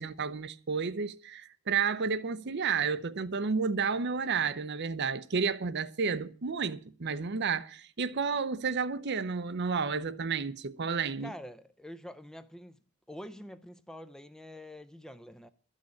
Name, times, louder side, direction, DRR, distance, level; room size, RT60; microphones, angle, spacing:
voice 1, 0.0-11.3, right 5 dB, 55° right, 0.6 m, -31 dB
voice 2, 11.2-12.8 13.1-15.5, equal, 5° left, 0.5 m, -46 dB
12.5 x 6.4 x 8.4 m
head